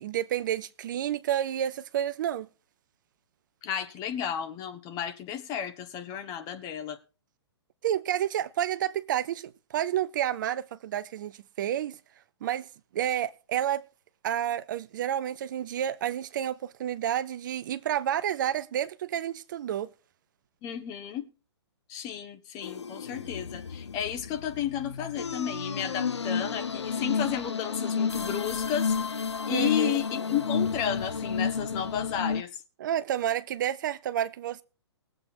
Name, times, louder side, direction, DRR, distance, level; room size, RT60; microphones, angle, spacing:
voice 1, 0.0-2.5 7.8-12.0 12.4-12.7 12.9-13.8 14.2-19.9 29.5-30.0 32.8-34.6, right 11 dB, 45° right, 0.6 m, -30 dB
voice 2, 3.6-7.0 20.6-21.2 21.9-32.5, left 9 dB, 25° left, 1.4 m, -33 dB
sound 1, 22.6-32.4, left 5 dB, 75° left, 0.7 m, -31 dB
19.5 x 7.9 x 4.6 m
figure-of-eight pair, 120°, 14 cm